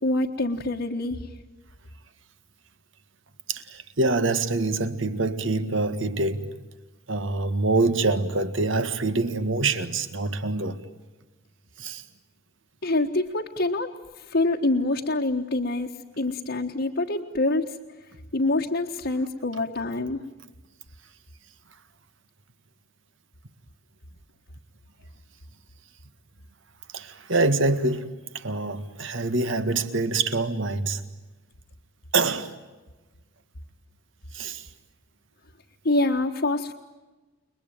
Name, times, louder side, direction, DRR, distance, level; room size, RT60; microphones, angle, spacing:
voice 1, 0.0-1.3 12.8-13.9 14.2-15.9 16.2-17.8 18.3-20.2 35.8-36.7, left 2 dB, 55° left, 1.5 m, -25 dB
voice 2, 3.5-6.5 7.1-10.8 11.8-12.0 26.9-31.0 32.1-32.5 34.3-34.7, right 3 dB, 65° right, 1.8 m, -25 dB
29.5 x 22.0 x 9.1 m
head